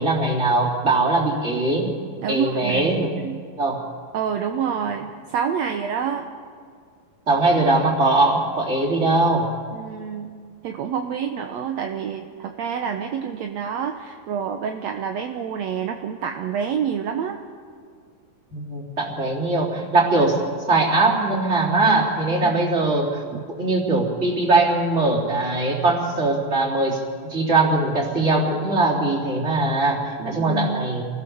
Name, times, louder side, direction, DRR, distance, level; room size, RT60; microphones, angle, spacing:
voice 1, 0.0-1.9 2.3-3.1 3.6-3.8 7.3-9.4 18.5-20.4 20.7-23.2 23.6-31.0, right 2 dB, 20° right, -2 dB, 3.8 m, -21 dB
voice 2, 2.2-3.4 4.1-6.3 9.7-10.3 10.6-17.4 22.4-22.6 23.3-23.4 30.2-30.9, right 7 dB, 70° right, 5 dB, 1.8 m, -28 dB
28.0 x 19.0 x 7.1 m, 2.1 s
omnidirectional pair, 4.1 m